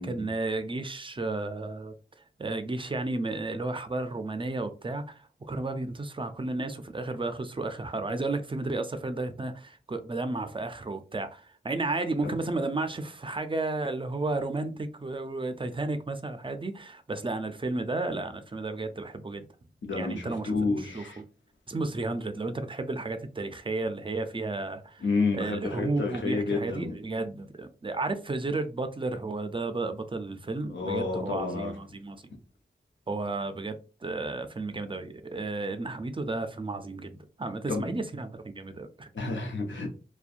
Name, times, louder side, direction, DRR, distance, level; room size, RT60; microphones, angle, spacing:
voice 1, 0.0-1.9 2.4-19.5 19.9-21.2 21.7-25.0 25.3-32.3 33.1-39.1, right 2 dB, 25° right, 0.4 m, -33 dB
voice 2, 19.8-21.2 25.0-26.9 30.6-31.7 37.7-38.0 39.1-39.9, left 3 dB, 85° left, 0.7 m, -30 dB
2.6 x 2.2 x 2.4 m
cardioid pair, 55°, 19 cm